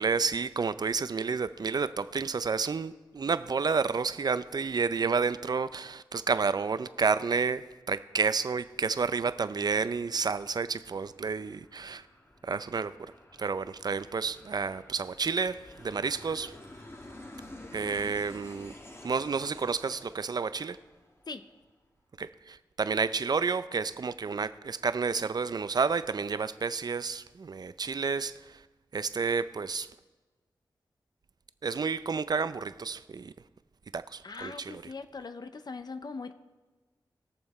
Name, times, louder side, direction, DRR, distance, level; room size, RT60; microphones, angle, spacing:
voice 1, 0.0-12.1 12.4-12.9 13.4-16.5 17.7-18.7 19.0-20.8 22.2-28.6 28.9-29.9 31.6-33.3 33.9-34.9, right 5 dB, 50° right, 0.5 m, -30 dB
Aircraft, 8.7-21.7, left 1 dB, 30° left, 1.4 m, -51 dB
voice 2, 34.2-36.3, left 4 dB, 55° left, 0.7 m, -40 dB
20.5 x 7.0 x 4.2 m
wide cardioid pair, 80°, 9 cm